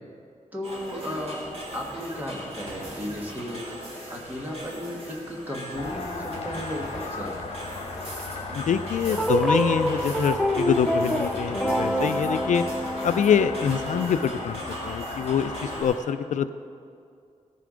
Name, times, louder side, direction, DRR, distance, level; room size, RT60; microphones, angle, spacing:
voice 1, 0.5-1.4 1.7-7.4, equal, 15° right, -1 dB, 1.5 m, -35 dB
sound 1, 0.6-16.0, right 1 dB, 50° right, 2.4 m, -39 dB
sound 2, 5.8-15.8, left 3 dB, 60° left, 1.3 m, -36 dB
voice 2, 8.5-12.6 13.0-16.5, left 7 dB, 75° left, 11 dB, 0.4 m, -25 dB
sound 3, 9.1-14.1, equal, ahead, 0.5 m, -26 dB
17.0 x 6.7 x 5.0 m, 2.4 s
wide cardioid pair, 175°, 13 cm